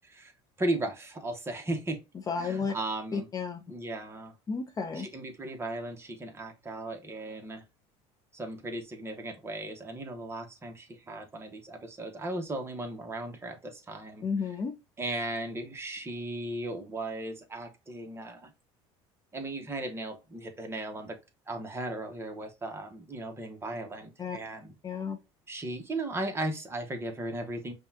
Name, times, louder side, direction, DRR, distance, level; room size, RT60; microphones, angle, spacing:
voice 1, 0.6-2.0 2.4-3.2 3.7-4.3 5.0-7.6 8.3-14.2 15.0-18.5 19.3-21.2 21.5-24.7 25.5-27.7, right 2 dB, 20° right, 1.0 m, -36 dB
voice 2, 2.3-2.7 3.1-3.6 4.5-5.1 14.2-14.7 24.2-24.4 24.8-25.2, left 5 dB, 30° left, 0.5 m, -32 dB
5.3 x 2.4 x 2.7 m
supercardioid pair, 110°, 13 cm